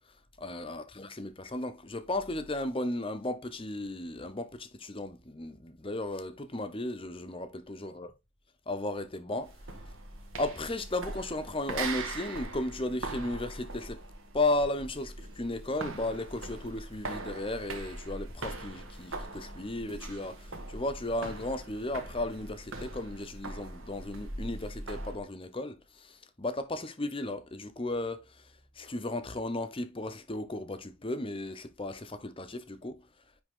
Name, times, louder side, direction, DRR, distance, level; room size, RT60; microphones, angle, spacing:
voice 1, 0.4-8.1 8.7-9.6 10.3-14.0 14.3-33.0, left 2 dB, 25° left, 0.8 m, -35 dB
sound 1, 9.4-25.2, right 2 dB, 70° right, 1.4 m, -41 dB
10.0 x 3.5 x 3.7 m
head